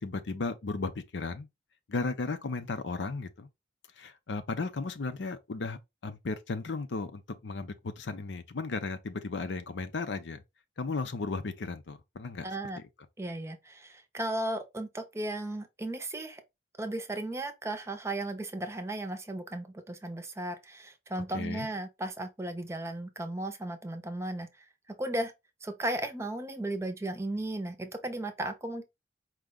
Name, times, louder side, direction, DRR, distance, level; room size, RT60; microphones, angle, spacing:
voice 1, 0.0-1.5 1.9-3.5 4.0-10.4 10.8-12.5 21.3-21.7, left 3 dB, 85° left, 0.6 m, -35 dB
voice 2, 12.4-12.8 13.2-16.4 16.8-24.6 25.0-25.3 25.6-28.8, right 1 dB, 15° right, 0.5 m, -35 dB
4.7 x 2.2 x 3.7 m
head